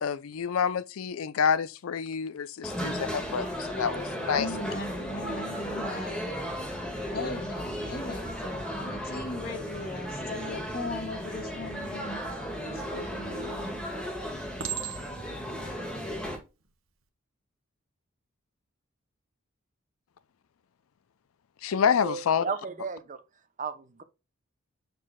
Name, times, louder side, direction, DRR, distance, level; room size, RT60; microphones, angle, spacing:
voice 1, 0.0-4.5 21.6-22.4, left 7 dB, 80° left, 0.4 m, -28 dB
sound 1, 2.6-16.4, equal, 5° left, 1.8 m, -35 dB
voice 2, 4.4-6.3 7.1-13.8, left 2 dB, 45° left, 1.8 m, -38 dB
Chink clink, 13.1-13.6 14.6-15.4 16.1-16.4, right 9 dB, 75° right, 1.2 m, -36 dB
voice 3, 21.7-23.2 23.6-24.0, right 5 dB, 35° right, 0.7 m, -35 dB
6.6 x 6.4 x 2.3 m
head